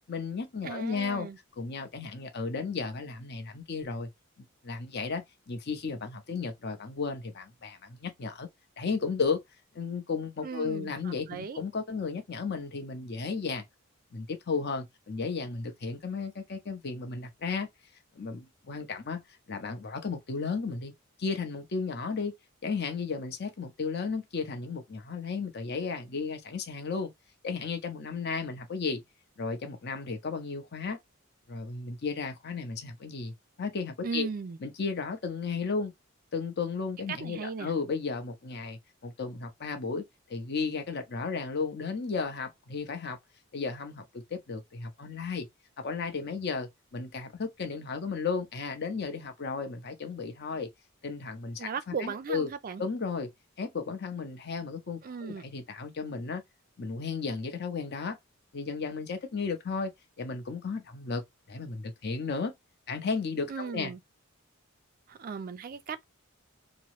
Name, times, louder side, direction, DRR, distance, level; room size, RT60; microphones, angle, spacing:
voice 1, 0.1-1.3 1.6-4.1 4.4-8.5 8.8-9.4 9.7-13.6 14.1-17.7 18.2-19.2 19.5-20.9 21.2-22.3 22.6-27.1 27.4-29.0 29.4-31.0 31.5-34.3 34.6-35.9 36.3-40.0 40.3-43.2 43.5-45.5 45.8-50.7 51.0-52.5 52.8-53.3 53.6-56.4 56.8-58.2 58.5-59.9 60.2-61.2 61.5-62.5 62.9-63.9, left 4 dB, 50° left, 0.7 m, -34 dB
voice 2, 0.6-1.4 10.4-11.6 34.0-34.6 37.1-37.7 51.6-52.8 55.0-55.4 63.5-64.0 65.1-66.0, right 5 dB, 40° right, 0.4 m, -37 dB
2.9 x 2.0 x 3.0 m
head